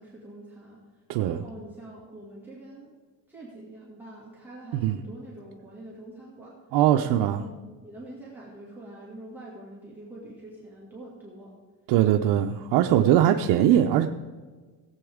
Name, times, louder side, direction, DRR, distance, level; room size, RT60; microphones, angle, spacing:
voice 1, 0.0-2.9 3.3-6.5 7.0-11.5, right 1 dB, 5° right, -7 dB, 2.1 m, -45 dB
voice 2, 6.7-7.4 11.9-14.1, right 11 dB, 80° right, 4 dB, 0.6 m, -21 dB
17.0 x 7.9 x 3.6 m, 1.4 s
cardioid pair, 165°, 39 cm